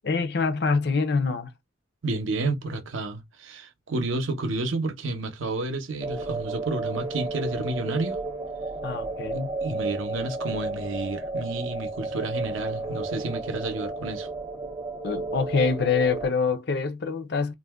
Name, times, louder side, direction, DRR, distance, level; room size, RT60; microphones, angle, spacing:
voice 1, 0.0-1.5 8.8-9.6 15.0-17.5, left 4 dB, 55° left, 0.5 m, -25 dB
voice 2, 2.0-8.2 9.6-14.3, right 2 dB, 80° right, 0.6 m, -30 dB
sound 1, 6.0-16.3, right 3 dB, 20° right, 0.5 m, -32 dB
2.5 x 2.1 x 3.4 m
head